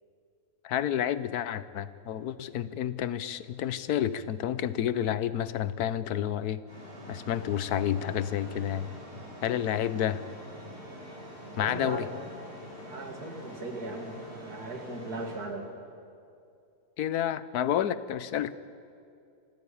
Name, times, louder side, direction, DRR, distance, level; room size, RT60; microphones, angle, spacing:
voice 1, 0.6-6.6 7.1-8.9 9.4-10.2 11.6-12.1 17.0-18.6, left 10 dB, 85° left, 15 dB, 1.3 m, -30 dB
sound 1, 6.7-15.4, equal, 45° right, 8.1 m, -45 dB
voice 2, 11.6-12.1 12.8-15.7, right 2 dB, 85° right, 4 dB, 2.8 m, -38 dB
26.5 x 15.0 x 8.6 m, 2.5 s
omnidirectional pair, 1.6 m